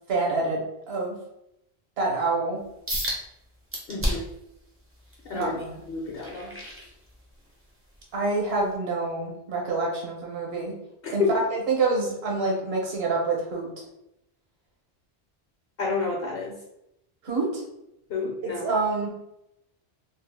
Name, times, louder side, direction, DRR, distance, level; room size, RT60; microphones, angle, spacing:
voice 1, 0.1-1.2 2.0-2.6 5.3-5.7 8.1-10.7 11.1-13.7 17.2-17.6 18.4-19.1, right 3 dB, 65° right, -1 dB, 1.0 m, -27 dB
sound 1, 2.9-3.2 3.7-4.4 4.9-7.5 7.9-8.2 8.7-8.8, equal, 20° right, 0.4 m, -32 dB
voice 2, 3.9-4.3 5.2-5.5 5.9-6.6 11.0-11.3 15.8-16.6 18.1-18.6, left 4 dB, 65° left, -2 dB, 0.7 m, -29 dB
2.4 x 2.0 x 3.2 m, 0.83 s
omnidirectional pair, 1.1 m